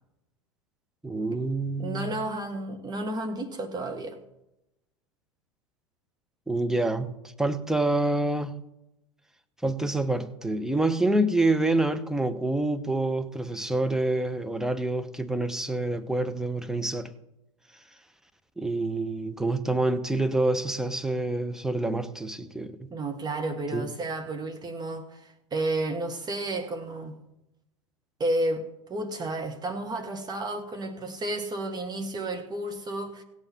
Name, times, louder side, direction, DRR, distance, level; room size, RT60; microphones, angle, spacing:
voice 1, 1.0-2.1 6.5-7.1 7.4-8.6 9.6-17.1 18.6-22.9 23.7-23.9, right 2 dB, 5° right, 0.9 m, -27 dB
voice 2, 1.8-4.2 22.9-27.2 28.2-33.2, right 2 dB, 25° right, 1.3 m, -32 dB
17.0 x 7.0 x 5.7 m
figure-of-eight pair, 85°, 17 cm